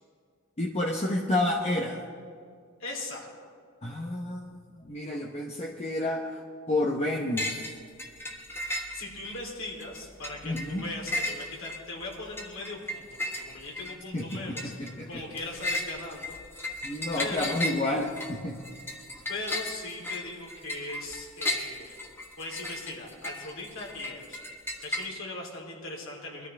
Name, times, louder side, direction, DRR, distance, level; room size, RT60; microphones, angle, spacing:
voice 1, 0.6-2.0 3.8-6.4 6.7-7.7 10.4-10.9 14.1-15.2 16.8-18.6, left 1 dB, 30° left, 0 dB, 0.9 m, -30 dB
voice 2, 2.8-3.3 8.6-16.3 17.2-17.6 19.3-22.0 22.4-24.4 24.8-26.5, left 2 dB, 70° left, -1 dB, 3.1 m, -39 dB
sound 1, 7.4-7.7 8.0-9.4 9.8-25.1, left 1 dB, 10° left, 1.3 m, -35 dB
22.5 x 13.0 x 3.4 m, 2.2 s
head